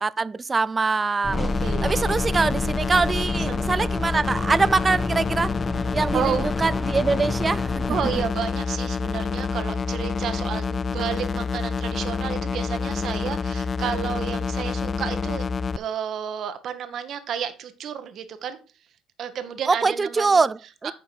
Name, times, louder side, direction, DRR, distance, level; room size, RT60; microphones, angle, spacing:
voice 1, 0.0-1.4 1.8-5.5 5.9-7.8 19.7-20.9, right 4 dB, 30° right, 0.4 m, -23 dB
sound 1, 1.2-8.3, left 1 dB, 15° left, 1.0 m, -31 dB
sound 2, 1.3-15.8, left 5 dB, 40° left, 0.3 m, -28 dB
voice 2, 1.3-2.2 3.3-3.9 6.1-6.4 7.9-15.5 15.8-18.6 19.2-20.4, right 8 dB, 55° right, 1.1 m, -31 dB
9.4 x 5.2 x 4.6 m
hypercardioid pair, 55°, 0 cm